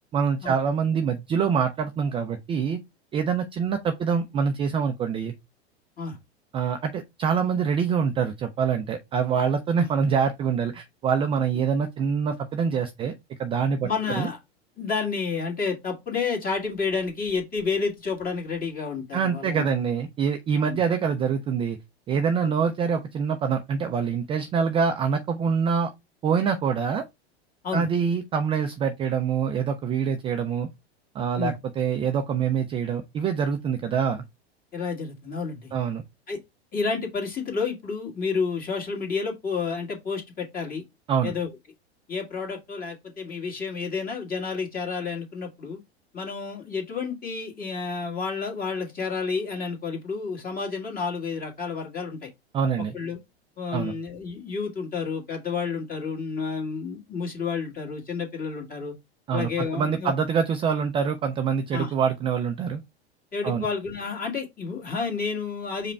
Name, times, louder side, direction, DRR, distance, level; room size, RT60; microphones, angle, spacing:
voice 1, 0.1-2.8 3.1-5.3 6.5-14.3 19.1-21.8 22.1-25.9 26.2-27.0 27.7-30.7 31.1-34.2 35.7-36.0 41.1-41.3 52.5-52.9 53.7-54.0 59.3-62.8 63.4-63.7, right 6 dB, 15° right, 0.3 m, -25 dB
voice 2, 13.8-14.4 14.8-19.7 20.6-20.8 22.4-22.5 27.6-27.9 31.4-31.6 34.7-35.7 36.3-36.4 36.7-40.8 41.2-41.5 42.1-45.8 46.1-52.3 52.9-53.2 53.6-58.9 59.3-60.1 61.7-61.9 63.3-65.9, left 5 dB, 25° left, 1.8 m, -30 dB
5.0 x 2.2 x 4.3 m
hypercardioid pair, 95°, 33 cm